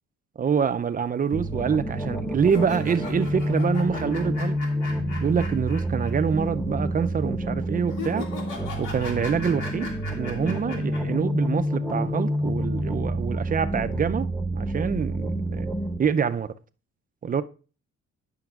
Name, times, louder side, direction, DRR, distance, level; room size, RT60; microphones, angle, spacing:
voice 1, 0.4-4.7 5.2-8.3 8.8-14.3 14.5-15.7 16.0-16.5 17.2-17.4, right 6 dB, 30° right, 0.4 m, -26 dB
sound 1, 1.3-16.0, equal, 5° left, 0.9 m, -28 dB
sound 2, 2.4-6.1 6.4-6.5 7.9-11.0, left 3 dB, 85° left, 2.2 m, -38 dB
13.0 x 5.9 x 2.4 m
cardioid pair, 90°, 30 cm